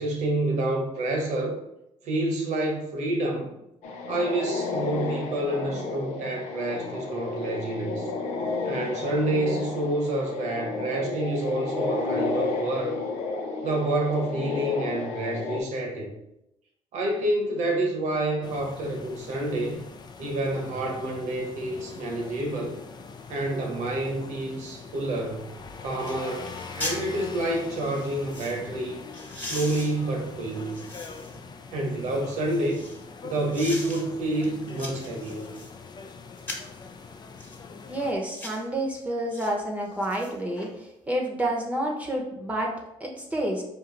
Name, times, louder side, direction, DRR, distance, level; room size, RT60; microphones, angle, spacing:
voice 1, 0.0-1.6 2.0-3.5 4.1-8.1 8.6-13.0 13.6-16.1 16.9-19.9 20.2-22.8 23.3-25.5 25.8-29.0 29.4-30.7 31.7-32.8 33.2-35.4, right 1 dB, 80° right, 1 dB, 1.1 m, -28 dB
sound 1, 3.8-15.6, left 3 dB, 85° left, 0.6 m, -32 dB
sound 2, 18.4-38.1, left 5 dB, 35° left, 0.5 m, -43 dB
sound 3, 26.0-26.2 26.4-27.0 27.8-28.6 29.1-31.4 31.9-33.0 33.5-34.0 34.4-35.7 36.4-36.8 37.4-37.6 38.2-38.6 39.3-39.5 39.9-40.7 41.0-41.1, left 2 dB, 15° left, 1.3 m, -39 dB
voice 2, 37.9-42.7 43.0-43.6, right 1 dB, 10° right, -2 dB, 0.9 m, -29 dB
4.6 x 2.6 x 3.8 m, 0.85 s
cardioid pair, 85°, 12 cm